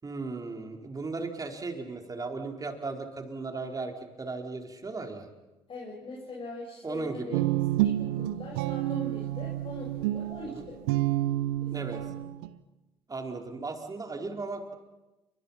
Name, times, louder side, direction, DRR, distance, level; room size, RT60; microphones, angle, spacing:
voice 1, 0.0-5.3 6.8-7.4 10.4-10.7 11.7-12.0 13.1-14.7, right 3 dB, 30° right, 3 dB, 4.8 m, -36 dB
voice 2, 5.7-7.4 7.8-10.8 11.6-12.3, left 2 dB, 45° left, -2 dB, 7.5 m, -42 dB
Guitar, 7.3-12.5, right 15 dB, 80° right, 1.0 m, -29 dB
29.5 x 25.0 x 5.9 m, 1.0 s
hypercardioid pair, 55°, 13 cm